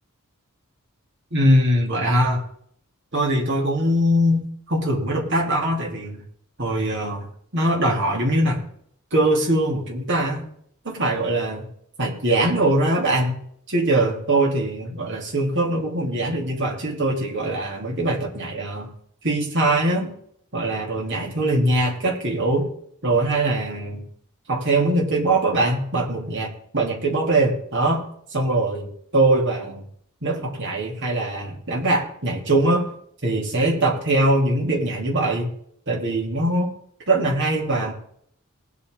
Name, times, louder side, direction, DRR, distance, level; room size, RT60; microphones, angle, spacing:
voice 1, 1.3-2.4 3.1-6.2 6.6-7.2 7.5-8.6 9.1-10.5 10.8-11.7 12.0-13.4 13.7-18.9 19.2-20.1 20.5-22.7 23.0-24.1 24.5-28.0 28.3-29.8 30.2-32.9 33.2-35.5 35.9-36.7 37.1-37.9, right 1 dB, 55° right, -1 dB, 3.0 m, -22 dB
20.5 x 8.6 x 3.8 m, 0.66 s
head